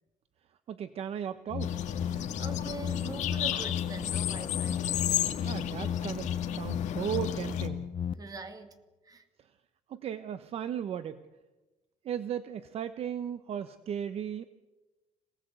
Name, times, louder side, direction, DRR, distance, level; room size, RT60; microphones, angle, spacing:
voice 1, 0.7-1.7 5.4-7.9 9.9-11.2 12.0-14.5, right 9 dB, 50° right, 11 dB, 1.0 m, -36 dB
sound 1, 1.5-8.1, left 8 dB, 45° left, 0.9 m, -34 dB
sound 2, 1.6-7.7, left 11 dB, 65° left, 2.2 m, -34 dB
voice 2, 2.0-5.0 8.2-9.2, right 3 dB, 30° right, 7 dB, 2.6 m, -44 dB
27.0 x 19.0 x 8.1 m, 1.2 s
cardioid pair, 135°, 13 cm